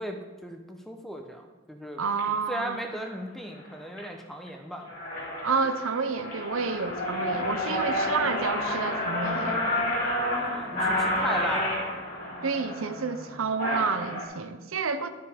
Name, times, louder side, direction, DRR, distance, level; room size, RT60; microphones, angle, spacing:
voice 1, 0.0-2.0 2.3-4.9 7.1-7.3 10.4-11.8, equal, ahead, 3 dB, 0.8 m, -37 dB
sound 1, 2.0-2.2 2.9-3.1 3.6-4.0 4.5-4.6 4.8-14.2, left 1 dB, 40° left, 2.9 m, -30 dB
voice 2, 2.0-2.8 5.4-9.7 12.4-15.1, right 5 dB, 90° right, 10 dB, 0.7 m, -29 dB
12.0 x 5.8 x 5.0 m, 1.2 s
head